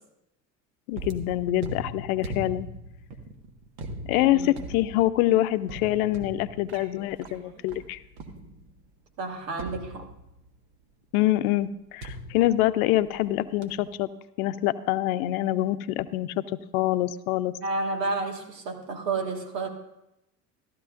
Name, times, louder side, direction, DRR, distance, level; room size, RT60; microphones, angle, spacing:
voice 1, 0.9-2.7 4.1-8.0 11.1-14.1 14.4-16.3 16.7-17.5, left 15 dB, 60° left, 13 dB, 0.7 m, -25 dB
sound 1, 0.9-8.9 9.6-10.6 12.0-13.3 13.6-14.0, right 1 dB, 60° right, 1.6 m, -40 dB
voice 2, 4.2-4.5 9.2-10.1 17.6-19.7, right 3 dB, 80° right, 4 dB, 1.8 m, -31 dB
15.0 x 12.5 x 2.5 m, 0.86 s
hypercardioid pair, 75°, 48 cm